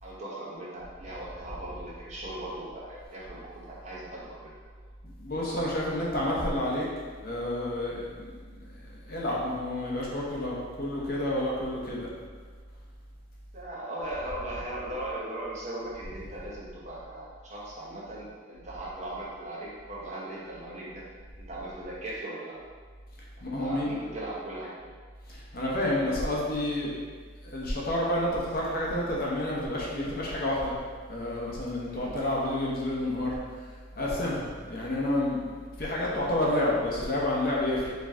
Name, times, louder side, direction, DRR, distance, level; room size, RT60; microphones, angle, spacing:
voice 1, 0.0-4.5 13.5-21.1 21.4-22.6 23.4-24.7 31.9-32.1 34.5-34.7, right 1 dB, 35° right, -6 dB, 0.9 m, -38 dB
voice 2, 5.0-6.8 7.2-12.1 23.4-24.0 25.3-26.9 27.4-30.7 31.1-33.3 34.0-34.4 34.7-35.4 35.8-37.9, left 1 dB, 45° left, -4 dB, 0.9 m, -29 dB
4.9 x 3.1 x 3.5 m, 1.5 s
head